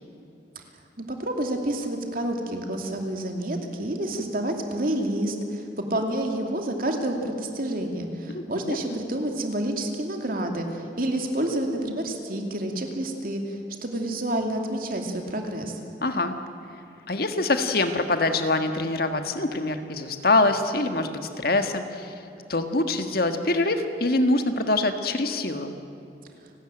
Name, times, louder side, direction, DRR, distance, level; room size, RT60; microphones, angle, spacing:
voice 1, 1.0-15.8, right 1 dB, 50° right, 3 dB, 2.7 m, -29 dB
voice 2, 8.3-8.8 16.0-16.4 17.1-22.1 22.5-25.7, left 2 dB, 55° left, 7 dB, 1.6 m, -24 dB
30.0 x 13.0 x 9.0 m, 2.6 s
head